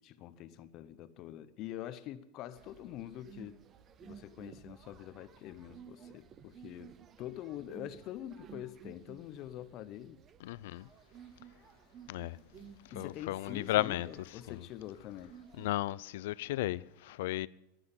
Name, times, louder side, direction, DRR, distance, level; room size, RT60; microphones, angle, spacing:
voice 1, 0.0-3.6 4.0-10.2 12.9-15.4, left 12 dB, 40° left, 0.7 m, -45 dB
sound 1, 2.6-15.8, right 7 dB, 30° right, 0.8 m, -55 dB
voice 2, 10.4-10.9 12.1-12.4 13.0-14.1 15.6-17.5, left 16 dB, 75° left, 0.4 m, -34 dB
11.0 x 9.8 x 8.2 m
supercardioid pair, 150°, 0 cm